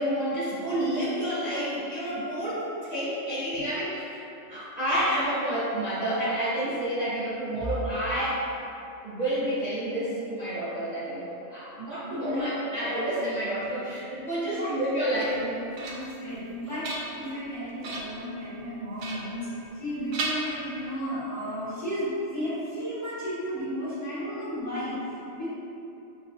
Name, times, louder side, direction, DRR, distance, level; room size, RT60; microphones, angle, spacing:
voice 1, 0.0-4.2 4.5-8.4 9.0-15.4, right 1 dB, 35° right, -13 dB, 0.8 m, -29 dB
voice 2, 12.1-12.5 14.1-14.2 14.6-14.7 15.2-15.6 15.9-16.9 17.1-19.5 19.7-25.5, equal, 15° left, -13 dB, 1.2 m, -33 dB
sound 1, 15.3-16.2 16.6-17.4 17.8-18.3 19.0-19.8 20.1-21.1, right 2 dB, 75° right, 0.9 m, -36 dB
6.3 x 2.3 x 2.6 m, 2.8 s
omnidirectional pair, 1.3 m